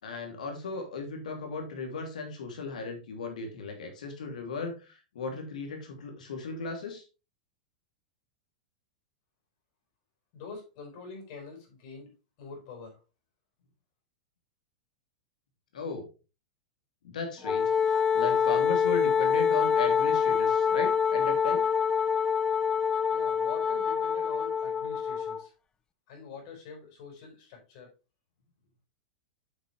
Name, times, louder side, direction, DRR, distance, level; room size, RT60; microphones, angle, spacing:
voice 1, 0.0-7.0 15.7-16.1 17.0-21.6, left 4 dB, 80° left, 4 dB, 3.0 m, -36 dB
voice 2, 10.3-13.0 23.1-25.5 26.1-27.9, left 5 dB, 55° left, 2 dB, 5.0 m, -45 dB
Wind instrument woodwind instrument, 17.4-25.4, left 7 dB, 20° left, 0.4 m, -26 dB
8.1 x 6.5 x 3.3 m, 0.30 s
hypercardioid pair, 115°, 4 cm